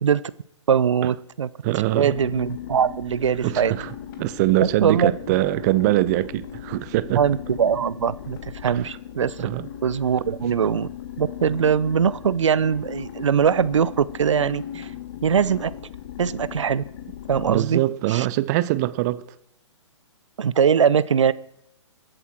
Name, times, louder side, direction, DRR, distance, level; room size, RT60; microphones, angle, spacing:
voice 1, 0.7-1.5 1.9-3.7 4.8-5.1 7.2-9.5 9.8-10.9 11.2-14.9 15.2-15.7 16.2-16.8 17.3-17.8 18.1-18.3 20.4-21.3, right 7 dB, 70° right, 0.7 m, -21 dB
voice 2, 1.6-2.1 3.4-7.2 8.7-8.8 9.4-9.7 10.5-10.6 17.5-19.2, right 17 dB, 35° right, 0.6 m, -23 dB
sound 1, 2.1-17.6, left 10 dB, 40° left, 2.2 m, -38 dB
23.5 x 8.0 x 4.5 m
figure-of-eight pair, 125°, 16 cm